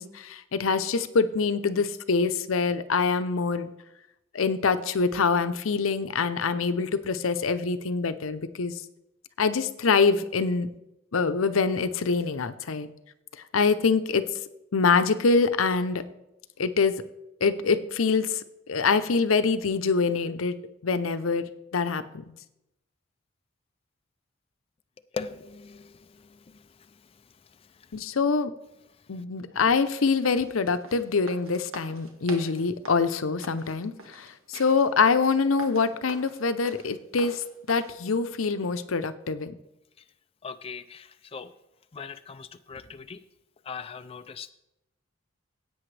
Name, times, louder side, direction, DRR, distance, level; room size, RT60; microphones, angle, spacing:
voice 1, 0.0-3.7 4.3-8.8 9.4-10.7 11.1-12.9 13.5-14.2 14.7-16.0 16.6-17.0 17.4-22.4 27.9-28.5 29.1-39.5, left 4 dB, 90° left, 11 dB, 0.7 m, -25 dB
voice 2, 25.1-26.6 27.8-27.9 40.4-41.5 41.9-43.2 43.6-44.5, left 5 dB, 30° left, 10 dB, 0.4 m, -40 dB
sound 1, 29.8-37.9, right 3 dB, 90° right, 1.7 m, -45 dB
16.0 x 8.6 x 3.3 m, 0.88 s
head